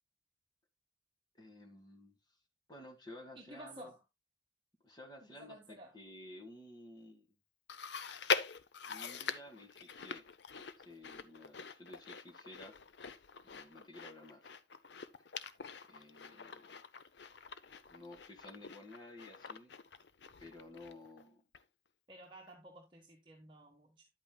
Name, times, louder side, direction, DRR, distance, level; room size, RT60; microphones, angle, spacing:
voice 1, 1.3-2.1 2.7-3.9 4.8-7.3 8.8-10.2 10.8-12.7 13.4-14.5 15.9-16.8 17.9-19.7 20.4-21.4, left 1 dB, 25° left, 1.9 m, -53 dB
voice 2, 3.3-4.0 5.2-5.9 22.1-24.1, right 1 dB, 25° right, 1.3 m, -53 dB
Chewing mastication, 7.7-21.2 21.5-21.6 22.5-22.6, left 6 dB, 70° left, 0.7 m, -43 dB
10.5 x 8.5 x 2.3 m
head